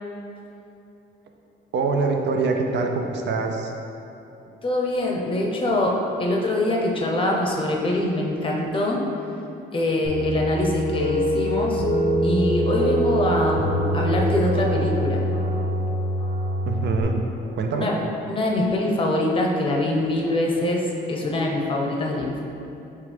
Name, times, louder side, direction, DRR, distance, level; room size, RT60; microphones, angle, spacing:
voice 1, 1.7-3.7 16.7-17.2 17.5-17.9, right 4 dB, 60° right, 3 dB, 0.5 m, -24 dB
voice 2, 4.6-9.0 9.7-11.8 12.2-15.3 17.7-18.0 18.3-22.4, left 1 dB, 25° left, -1 dB, 0.7 m, -24 dB
sound 1, 10.0-17.0, right 1 dB, 85° right, 1.0 m, -24 dB
5.8 x 2.4 x 3.3 m, 2.9 s
cardioid pair, 90°, 20 cm